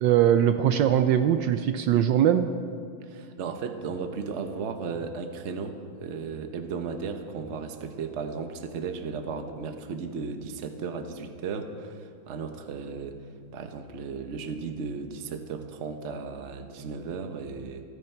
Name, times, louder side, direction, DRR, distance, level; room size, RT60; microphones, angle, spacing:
voice 1, 0.0-2.5, right 10 dB, 75° right, 9 dB, 1.2 m, -21 dB
voice 2, 3.0-13.2 13.5-17.8, right 5 dB, 45° right, 7 dB, 1.0 m, -35 dB
29.0 x 9.8 x 4.5 m, 2.2 s
omnidirectional pair, 2.2 m